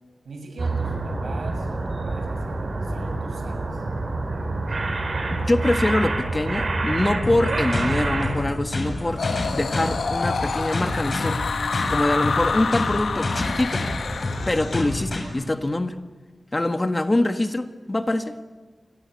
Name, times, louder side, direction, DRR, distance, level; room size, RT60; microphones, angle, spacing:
voice 1, 0.2-3.8, right 2 dB, 85° right, 4 dB, 7.0 m, -40 dB
sound 1, 0.6-8.5, right 2 dB, 55° right, 6.1 m, -27 dB
voice 2, 5.3-9.2 9.5-11.4 11.9-13.9 14.5-16.0 16.5-18.4, left 1 dB, 25° left, 8 dB, 1.5 m, -24 dB
sound 2, 7.2-15.2, left 2 dB, 45° left, 7.8 m, -29 dB
sound 3, 9.2-14.8, left 5 dB, 80° left, 1.1 m, -28 dB
29.0 x 23.0 x 8.5 m, 1.3 s
wide cardioid pair, 100°, 0 cm